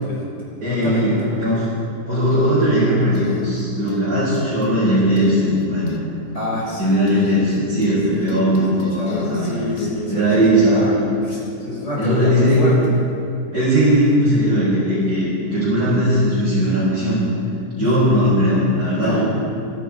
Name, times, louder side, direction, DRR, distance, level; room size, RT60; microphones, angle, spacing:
voice 1, 0.0-0.3 0.7-1.4 6.3-6.9 8.1-8.3 9.0-12.7 17.8-17.9 18.9-19.2, left 1 dB, 45° left, -5 dB, 4.9 m, -27 dB
voice 2, 0.6-1.6 2.1-6.1 6.8-9.6 10.1-10.9 12.0-12.6 13.5-17.2 17.8-19.2, equal, 80° right, -12 dB, 4.8 m, -18 dB
sound 1, 3.1-4.0 4.3-4.8 5.2-6.0 7.1-8.0 8.3-9.9, left 7 dB, 65° left, 1.5 m, -29 dB
21.0 x 10.5 x 4.7 m, 2.6 s
omnidirectional pair, 1.7 m